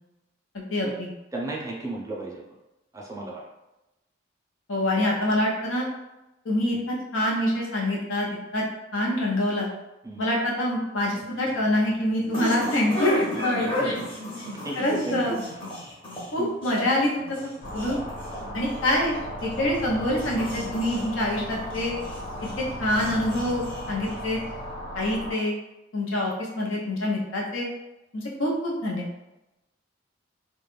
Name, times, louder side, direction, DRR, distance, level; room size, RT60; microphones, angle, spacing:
voice 1, 0.5-1.1 4.7-5.9 6.4-6.8 7.1-8.6 8.9-9.7 10.2-13.8 14.7-15.3 16.3-18.0 18.5-21.9 22.6-24.4 24.9-25.6 25.9-27.7 28.1-29.1, left 1 dB, 90° left, -2 dB, 0.7 m, -26 dB
voice 2, 1.3-2.4 2.9-3.4 10.0-10.2 13.8-13.9 14.5-15.4 16.4-16.5 18.4-18.6, right 2 dB, 15° right, -3 dB, 0.4 m, -33 dB
sound 1, 11.0-24.6, equal, 30° left, 0.6 m, -36 dB
sound 2, 17.6-25.3, equal, 65° left, 1.2 m, -36 dB
2.2 x 2.0 x 3.1 m, 0.96 s
head